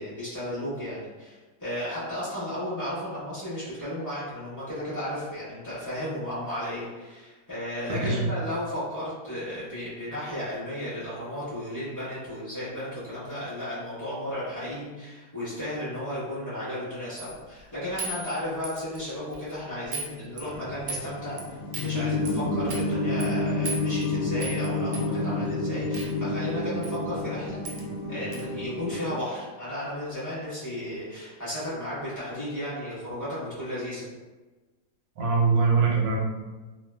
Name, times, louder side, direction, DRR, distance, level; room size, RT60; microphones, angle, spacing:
voice 1, 0.0-27.6 28.1-34.1, left 1 dB, 15° left, -12 dB, 0.7 m, -34 dB
voice 2, 7.9-8.3 35.2-36.2, right 4 dB, 70° right, -2 dB, 0.9 m, -23 dB
sound 1, 17.2-17.4 18.0-19.0 19.3-19.5 19.9-20.1 20.4-21.0 21.4-21.5 21.7-21.9 22.2-22.3 22.7-22.9 23.2-23.3 23.6-24.1 24.4-24.7 24.9-25.1 25.9-26.1 26.8-27.0 27.2-27.3 27.6-27.8 28.3-28.4, right 3 dB, 85° right, 1.3 m, -36 dB
sound 2, 20.4-29.1, left 2 dB, 90° left, 1.3 m, -29 dB
3.0 x 2.1 x 2.2 m, 1.2 s
omnidirectional pair, 1.9 m